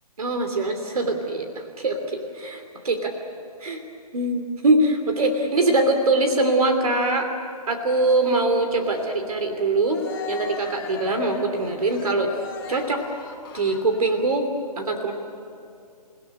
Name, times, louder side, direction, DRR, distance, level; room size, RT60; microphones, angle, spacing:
voice 1, 0.2-3.1 3.6-3.8 4.1-7.3 7.7-10.0 10.3-12.3 12.7-13.0 13.5-14.5 14.8-15.1, right 2 dB, 65° right, 6 dB, 3.0 m, -23 dB
Cheering, 7.9-14.3, left 4 dB, 30° left, 2.5 m, -38 dB
29.5 x 17.5 x 9.9 m, 2.6 s
hypercardioid pair, 160°, 20 cm